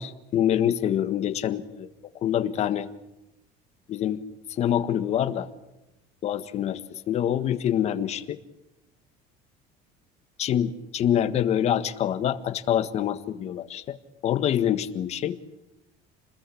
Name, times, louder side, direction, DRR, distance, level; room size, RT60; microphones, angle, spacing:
voice 1, 0.0-1.9 2.2-2.9 3.9-4.2 4.6-5.5 6.2-8.4 10.4-14.0 14.2-15.4, left 10 dB, 40° left, 10 dB, 1.6 m, -26 dB
29.0 x 21.0 x 8.6 m, 0.93 s
cardioid pair, 160°, 17 cm